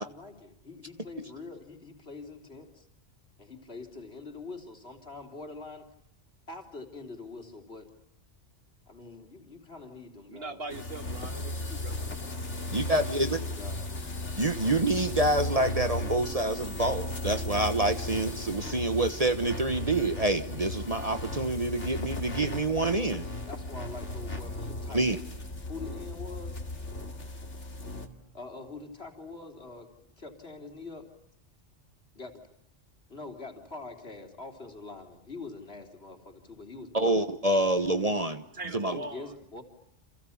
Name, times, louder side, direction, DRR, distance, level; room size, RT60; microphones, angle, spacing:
voice 1, 0.0-2.9 3.4-5.9 6.5-7.9 8.9-10.6 12.6-14.0 23.5-25.3 25.6-26.6 28.3-31.1 32.2-32.3 33.1-37.2 38.8-39.6, left 3 dB, 55° left, 3.7 m, -44 dB
voice 2, 10.3-12.0 38.5-39.3, right 3 dB, 55° right, 1.7 m, -41 dB
sound 1, 10.7-28.1, left 2 dB, 70° left, 2.7 m, -36 dB
voice 3, 12.7-13.4 14.4-23.3 24.9-25.2 36.9-38.4 38.7-39.0, right 2 dB, 30° right, 1.2 m, -27 dB
29.5 x 27.5 x 7.2 m
omnidirectional pair, 1.2 m